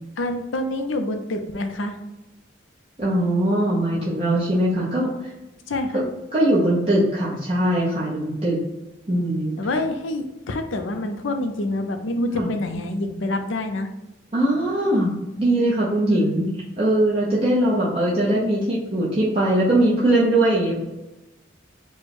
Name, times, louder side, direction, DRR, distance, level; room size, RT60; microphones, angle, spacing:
voice 1, 0.2-2.0 5.7-6.0 9.6-13.9 16.1-16.4, left 1 dB, 85° left, 6 dB, 0.6 m, -27 dB
voice 2, 3.0-5.1 5.9-6.0 6.3-8.6 9.1-9.6 12.3-12.5 14.3-16.5 16.8-20.8, right 1 dB, 30° right, -7 dB, 0.8 m, -21 dB
4.6 x 2.2 x 4.3 m, 0.99 s
head